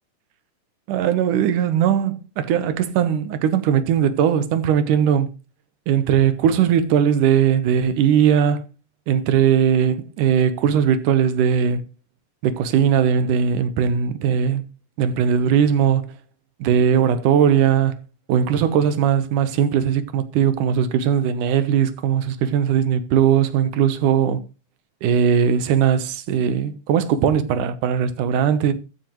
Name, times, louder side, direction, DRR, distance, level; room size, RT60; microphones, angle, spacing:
voice 1, 0.9-5.3 5.9-8.6 9.1-11.8 12.4-14.6 15.0-16.1 16.6-18.0 18.3-24.4 25.0-28.7, right 8 dB, 80° right, 2.6 m, -19 dB
15.5 x 9.9 x 3.0 m
omnidirectional pair, 3.6 m